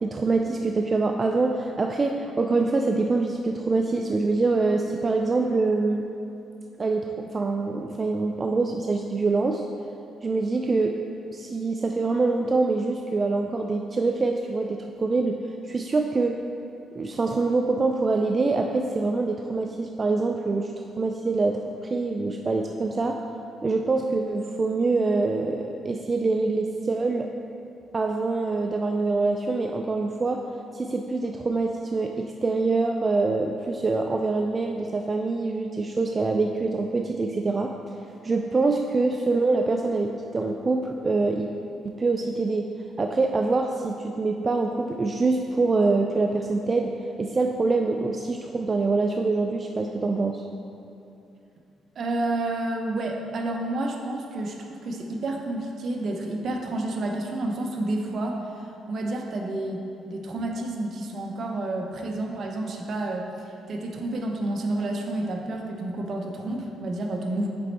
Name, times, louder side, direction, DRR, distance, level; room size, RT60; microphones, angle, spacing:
voice 1, 0.0-6.0 6.8-9.7 10.2-10.9 11.3-15.4 15.6-16.4 17.0-20.7 21.0-21.6 21.9-23.2 23.6-27.3 27.9-30.4 30.7-37.7 38.2-41.5 41.8-42.7 43.0-46.9 47.2-50.5, right 3 dB, 30° right, 3 dB, 0.3 m, -25 dB
voice 2, 52.0-58.4 58.9-59.8 60.1-63.3 63.7-67.5, right 2 dB, 55° right, 2 dB, 0.7 m, -30 dB
6.3 x 4.3 x 4.1 m, 2.7 s
cardioid pair, 90°, 0 cm